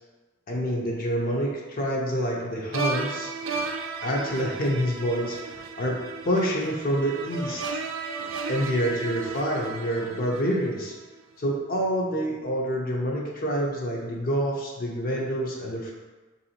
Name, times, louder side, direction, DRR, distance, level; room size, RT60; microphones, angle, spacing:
voice 1, 0.5-3.3 4.0-7.6 8.5-10.9 11.4-15.9, equal, 45° left, -2 dB, 0.5 m, -27 dB
sound 1, 2.7-10.9, right 4 dB, 80° right, 0.3 m, -34 dB
3.5 x 2.7 x 2.8 m, 1.2 s
head